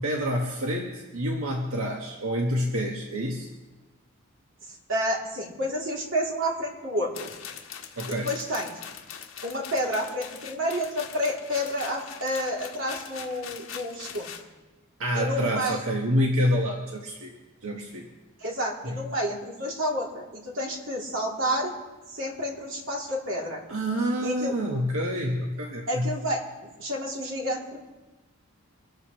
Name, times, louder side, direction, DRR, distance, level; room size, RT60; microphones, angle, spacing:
voice 1, 0.0-3.5 8.0-8.3 15.0-17.4 17.6-18.1 18.8-19.1 23.7-26.1, equal, 85° right, -1 dB, 1.6 m, -27 dB
voice 2, 4.9-7.3 8.1-8.7 9.4-14.3 15.1-15.8 18.4-21.7 22.1-23.6 24.2-24.5 25.9-27.8, equal, 65° right, -2 dB, 3.2 m, -30 dB
sound 1, 7.1-14.4, left 7 dB, 70° left, 1.7 m, -42 dB
25.0 x 13.5 x 3.3 m, 1.1 s
head